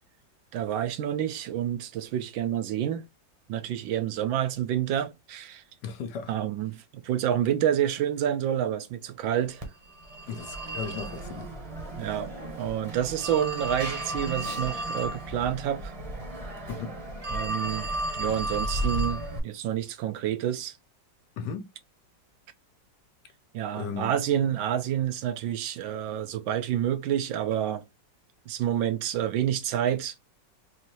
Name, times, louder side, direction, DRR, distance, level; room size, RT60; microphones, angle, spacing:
voice 1, 0.5-3.1 3.5-5.6 6.3-9.7 12.0-15.9 17.3-20.7 23.5-27.8 28.5-30.1, right 10 dB, 80° right, 1.4 m, -28 dB
voice 2, 5.8-6.3 10.3-11.5 16.7-17.0 21.4-21.7 23.7-24.1, left 6 dB, 70° left, 1.3 m, -36 dB
Telephone, 9.6-19.4, right 1 dB, 25° right, 0.8 m, -34 dB
4.3 x 2.6 x 3.0 m
omnidirectional pair, 2.0 m